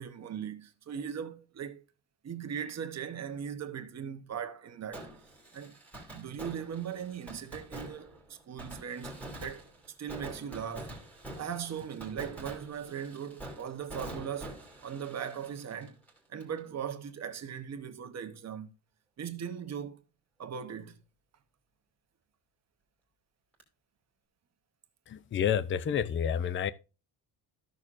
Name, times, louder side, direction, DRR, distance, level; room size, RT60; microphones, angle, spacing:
voice 1, 0.0-1.8 2.2-5.1 5.5-5.8 6.1-9.7 10.0-11.0 11.4-16.0 16.3-18.7 19.2-20.0 20.4-21.0, right 8 dB, 35° right, 1.0 m, -39 dB
Fireworks, 4.9-16.6 16.9-17.0 23.6-23.7, right 1 dB, 5° left, 2.5 m, -46 dB
voice 2, 25.1-26.7, left 8 dB, 30° left, 0.4 m, -29 dB
14.0 x 6.5 x 2.5 m
cardioid pair, 160°, 46 cm